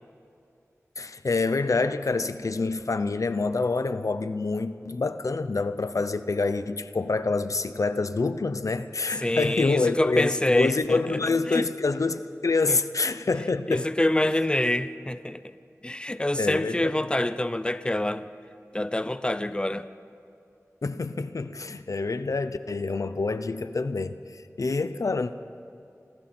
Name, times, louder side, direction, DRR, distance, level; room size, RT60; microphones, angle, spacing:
voice 1, 1.0-13.9 16.4-16.9 20.8-24.2 24.6-25.3, left 3 dB, 85° left, 0.8 m, -27 dB
voice 2, 9.2-11.6 12.7-12.8 13.7-15.6 15.8-18.3 18.7-19.9, left 1 dB, 20° left, 0.7 m, -26 dB
30.0 x 22.0 x 4.4 m
wide cardioid pair, 65°, 5 cm